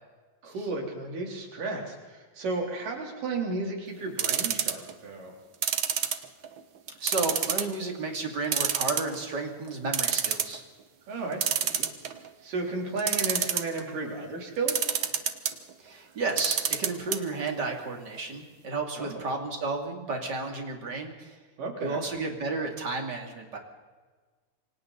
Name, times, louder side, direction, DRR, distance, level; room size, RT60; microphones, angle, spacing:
voice 1, 0.4-5.3 11.1-11.9 12.4-14.9 19.0-19.2 21.6-22.0, right 3 dB, 85° right, 0 dB, 5.2 m, -33 dB
sound 1, 4.2-4.9 5.6-6.6 7.1-7.7 8.1-8.2 8.5-9.3 9.7-9.8 9.9-10.6 11.4-12.3 13.0-13.8 14.7-15.5 16.3-17.2 17.5-17.6 17.8-17.9, right 8 dB, 60° right, 1.3 m, -27 dB
voice 2, 7.0-10.6 15.8-21.4 21.8-23.6, right 3 dB, 30° right, 2 dB, 3.2 m, -32 dB
28.0 x 24.5 x 4.1 m, 1.4 s
omnidirectional pair, 3.7 m